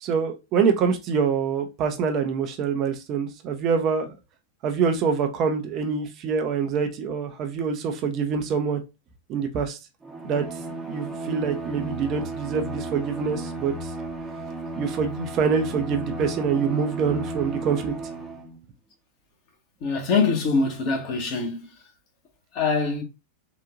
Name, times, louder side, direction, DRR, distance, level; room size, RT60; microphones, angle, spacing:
voice 1, 0.0-4.1 4.6-8.8 9.3-9.8 10.2-10.5 10.8-13.9 14.8-17.9, right 6 dB, 35° right, 0.7 m, -25 dB
Bowed string instrument, 10.0-18.6, right 2 dB, 10° right, 0.9 m, -34 dB
voice 2, 19.8-21.6 22.5-23.0, left 4 dB, 40° left, 1.3 m, -23 dB
3.9 x 2.6 x 2.4 m
figure-of-eight pair, 90°, 0 cm